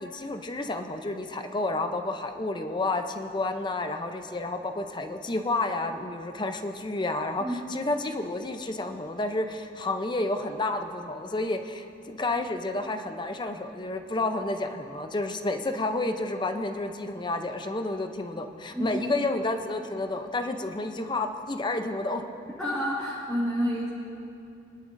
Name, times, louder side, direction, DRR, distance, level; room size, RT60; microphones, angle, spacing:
voice 1, 0.0-22.2, left 2 dB, 25° left, 6 dB, 0.6 m, -30 dB
voice 2, 22.6-23.9, equal, 5° left, -10 dB, 2.1 m, -29 dB
23.0 x 11.5 x 2.6 m, 2.6 s
head